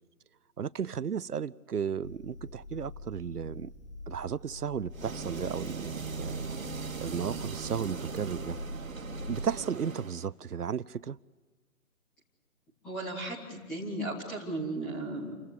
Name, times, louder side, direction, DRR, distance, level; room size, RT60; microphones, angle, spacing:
voice 1, 0.6-3.7 4.1-6.4 7.0-8.6 9.3-11.2, right 7 dB, 85° right, 0.8 m, -34 dB
sound 1, 2.0-9.6, left 1 dB, 85° left, 3.4 m, -44 dB
sound 2, 4.9-10.3, right 5 dB, 60° right, 2.1 m, -39 dB
voice 2, 12.8-15.3, right 2 dB, ahead, 0.8 m, -35 dB
28.5 x 16.0 x 8.2 m
figure-of-eight pair, 155°, 45 cm